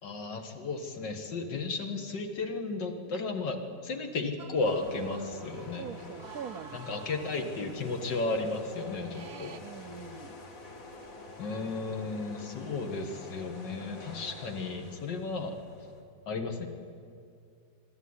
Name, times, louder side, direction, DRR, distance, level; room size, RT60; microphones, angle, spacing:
voice 1, 0.0-5.9 6.7-9.5 11.4-15.6 16.3-16.7, left 3 dB, 75° left, 5 dB, 2.4 m, -34 dB
sound 1, 4.4-7.6 7.9-8.0 8.2-9.6, right 5 dB, 45° right, 1.1 m, -49 dB
sound 2, 4.6-16.0, left 2 dB, 50° left, 2.1 m, -48 dB
voice 2, 5.8-7.0 9.6-10.4, right 7 dB, 65° right, 14 dB, 1.0 m, -43 dB
23.5 x 12.5 x 9.7 m, 2.4 s
omnidirectional pair, 1.9 m